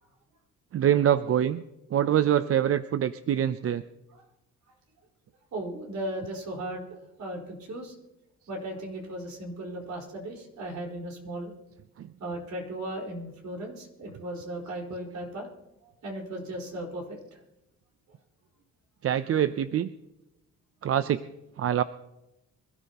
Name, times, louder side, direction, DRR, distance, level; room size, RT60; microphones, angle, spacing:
voice 1, 0.7-1.6 1.9-3.8 12.0-12.1 19.0-19.9 20.8-21.2 21.6-21.8, right 10 dB, 50° right, 13 dB, 0.6 m, -24 dB
voice 2, 5.5-6.8 7.2-7.9 8.5-11.5 12.2-15.5 15.8-17.4, right 1 dB, 65° right, -1 dB, 4.6 m, -36 dB
25.0 x 13.0 x 2.9 m, 0.93 s
cardioid pair, 90°, 30 cm